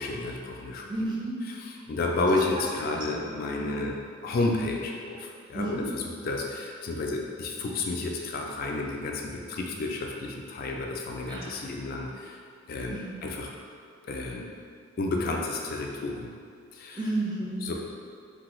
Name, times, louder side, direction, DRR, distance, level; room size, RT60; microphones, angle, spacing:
voice 1, 0.0-0.8 1.5-3.9 4.2-12.4 12.7-13.5 14.0-14.5 15.0-16.3 16.7-17.0 17.6-17.7, left 2 dB, 50° left, 0 dB, 0.3 m, -31 dB
voice 2, 0.9-1.4 2.9-3.3 3.6-3.9 5.5-6.0 11.3-11.6 12.9-13.2 17.0-17.7, right 2 dB, 25° right, -4 dB, 0.4 m, -33 dB
3.2 x 2.2 x 3.0 m, 2.2 s
head